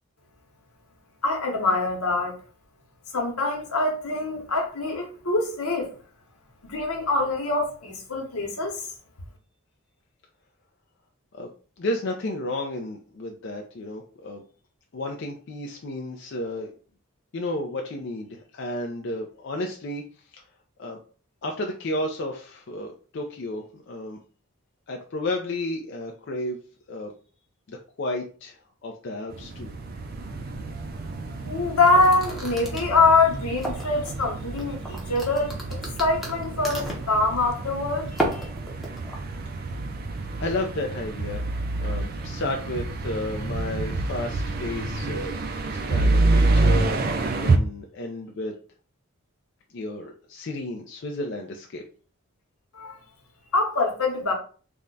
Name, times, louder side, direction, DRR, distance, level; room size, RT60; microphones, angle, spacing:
voice 1, 1.2-2.4 3.1-5.9 6.6-8.9 31.4-35.6 36.0-38.5 52.7-53.0 53.5-54.3, left 3 dB, 85° left, 1.0 m, -24 dB
voice 2, 11.8-14.4 14.9-16.7 17.3-20.0 20.3-20.4 20.8-21.0 21.4-24.2 24.9-26.6 26.9-27.1 27.7-29.7 40.4-41.4 41.7-45.4 45.7-47.0 47.3-48.5 49.7-51.8, left 1 dB, 55° left, 0.4 m, -32 dB
sound 1, 29.3-47.6, right 2 dB, 40° right, 0.4 m, -28 dB
sound 2, 31.8-34.1 34.6-37.1 38.1-39.2, right 1 dB, ahead, 0.6 m, -32 dB
3.5 x 2.2 x 3.8 m
head